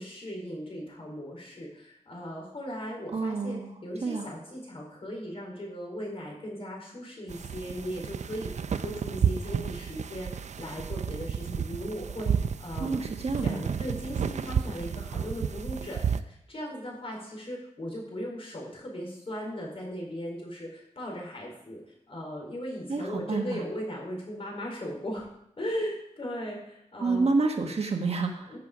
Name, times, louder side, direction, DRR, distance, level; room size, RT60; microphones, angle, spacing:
voice 1, 0.0-10.3 10.6-13.1 13.3-21.8 22.1-25.3 25.6-27.3 28.5-28.6, equal, 50° left, -1 dB, 4.5 m, -38 dB
voice 2, 3.1-3.7 4.0-4.3 12.8-13.6 22.9-23.6 27.0-28.5, right 3 dB, 60° right, 3 dB, 1.4 m, -28 dB
sound 1, 7.3-16.2, right 7 dB, 75° right, 0.5 m, -31 dB
14.0 x 7.5 x 5.1 m, 0.79 s
wide cardioid pair, 115°, 12 cm